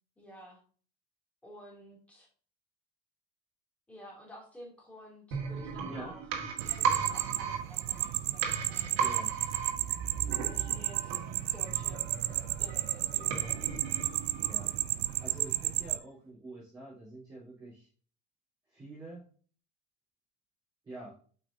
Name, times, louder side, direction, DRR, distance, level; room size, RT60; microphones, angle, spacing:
voice 1, 0.2-0.6 1.4-2.3 3.9-6.2 6.5-9.5 10.4-11.2 11.5-13.7, equal, 5° left, -2 dB, 2.6 m, -52 dB
sound 1, 5.3-15.0 15.3-15.4, right 6 dB, 65° right, 1.8 m, -36 dB
sound 2, 6.6-16.0, right 16 dB, 50° right, 0.4 m, -33 dB
voice 2, 9.0-9.3 14.4-17.9 18.7-19.2 20.8-21.1, right 2 dB, 20° right, -9 dB, 3.5 m, -47 dB
8.0 x 5.3 x 2.7 m, 0.42 s
cardioid pair, 165°, 21 cm